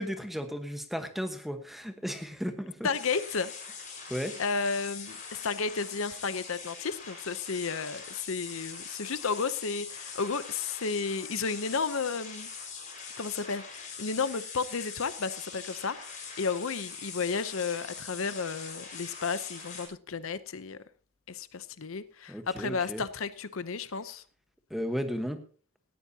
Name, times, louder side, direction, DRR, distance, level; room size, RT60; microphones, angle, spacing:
voice 1, 0.0-2.9 4.1-4.4 22.3-23.0 24.7-25.4, equal, ahead, 1.2 m, -34 dB
voice 2, 2.8-3.5 4.4-12.5 13.2-16.0 16.4-20.8 21.3-24.2, left 5 dB, 70° left, 0.7 m, -32 dB
sound 1, 2.9-19.9, left 5 dB, 35° left, 5.2 m, -43 dB
18.5 x 14.0 x 2.8 m
head